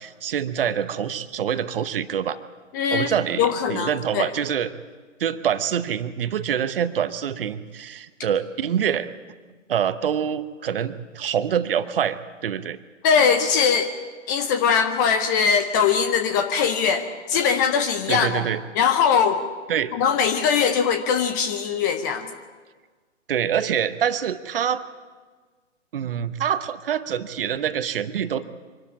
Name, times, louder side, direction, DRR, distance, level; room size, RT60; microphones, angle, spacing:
voice 1, 0.0-2.4 2.9-4.7 5.2-9.1 9.7-12.8 18.1-18.6 19.7-19.9 23.3-24.8 25.9-28.4, right 8 dB, 50° right, 13 dB, 1.0 m, -25 dB
voice 2, 2.7-4.3 13.0-13.9 14.3-18.4 18.7-19.4 19.9-22.3, left 6 dB, 15° left, 8 dB, 0.6 m, -21 dB
24.5 x 12.5 x 8.5 m, 1.4 s
figure-of-eight pair, 130°, 37 cm